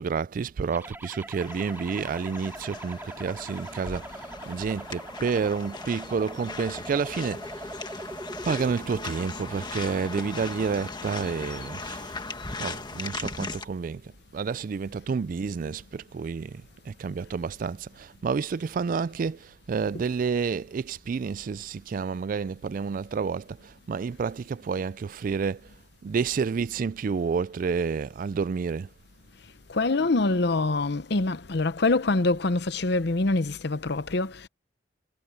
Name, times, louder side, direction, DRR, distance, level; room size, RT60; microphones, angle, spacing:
voice 1, 0.0-7.8 8.4-12.2 12.6-25.6 26.0-28.9, right 5 dB, 45° right, 0.3 m, -30 dB
sound 1, 0.7-8.7, right 1 dB, 10° right, 3.3 m, -42 dB
sound 2, 1.4-13.6, left 3 dB, 25° left, 1.6 m, -38 dB
voice 2, 29.7-34.5, left 3 dB, 60° left, 0.8 m, -25 dB
head